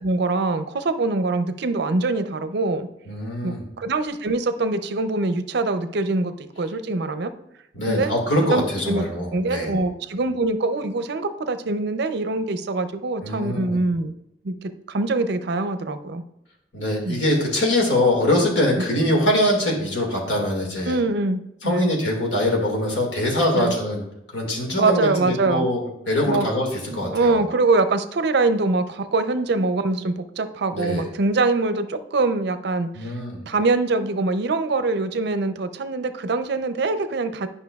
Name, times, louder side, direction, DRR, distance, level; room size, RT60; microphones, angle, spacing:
voice 1, 0.0-2.9 3.4-7.3 7.9-8.1 8.5-9.0 9.3-14.1 14.4-16.2 17.0-17.2 20.9-21.9 23.5-23.7 24.7-25.7 26.2-26.5 26.9-33.1 33.5-37.5, right 3 dB, 65° right, 10 dB, 0.5 m, -23 dB
voice 2, 3.1-3.6 7.7-9.7 13.2-13.8 16.7-21.0 21.6-24.0 24.3-27.4 30.7-31.1 32.9-33.4, left 1 dB, 85° left, 0 dB, 1.9 m, -23 dB
10.5 x 5.4 x 2.3 m, 0.81 s
head